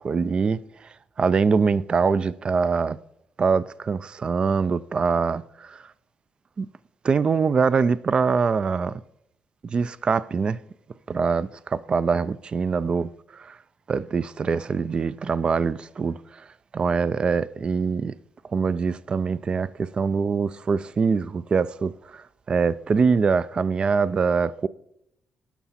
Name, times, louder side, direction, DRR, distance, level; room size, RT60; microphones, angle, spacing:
voice 1, 0.0-3.0 3.4-5.8 6.6-6.7 7.0-9.0 9.6-10.6 11.1-13.6 13.9-16.5 16.7-18.1 18.5-24.7, right 5 dB, 35° right, 0.3 m, -24 dB
13.0 x 5.7 x 4.2 m
cardioid pair, 125°, 3 cm